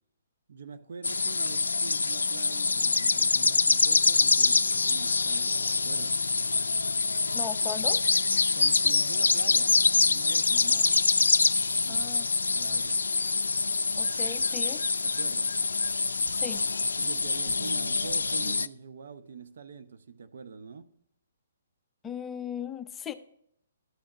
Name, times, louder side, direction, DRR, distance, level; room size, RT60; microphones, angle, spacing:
voice 1, 0.5-6.2 8.5-9.7 10.1-10.9 11.8-12.2 12.5-13.0 15.0-15.6 17.0-20.9, right 5 dB, 65° right, 0.7 m, -44 dB
sound 1, 1.0-18.7, left 4 dB, 80° left, 0.3 m, -25 dB
voice 2, 7.3-8.0 11.9-12.3 14.0-14.8 16.3-16.6 22.0-23.1, left 8 dB, 15° left, 0.5 m, -37 dB
12.5 x 6.3 x 2.9 m
figure-of-eight pair, 135°, 0 cm